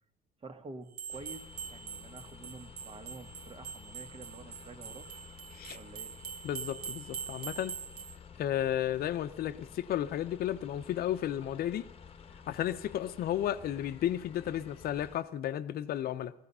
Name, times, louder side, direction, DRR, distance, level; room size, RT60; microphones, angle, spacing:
voice 1, 0.4-1.4 1.7-5.1 5.7-6.1, right 3 dB, 35° right, 1.8 m, -48 dB
sound 1, 0.9-8.2, right 7 dB, 65° right, 1.6 m, -44 dB
sound 2, 1.1-15.2, left 6 dB, 35° left, 1.2 m, -52 dB
voice 2, 6.4-7.8 8.4-11.9 12.5-16.3, left 11 dB, 65° left, 0.9 m, -33 dB
18.0 x 14.0 x 5.6 m
cardioid pair, 110°, 17 cm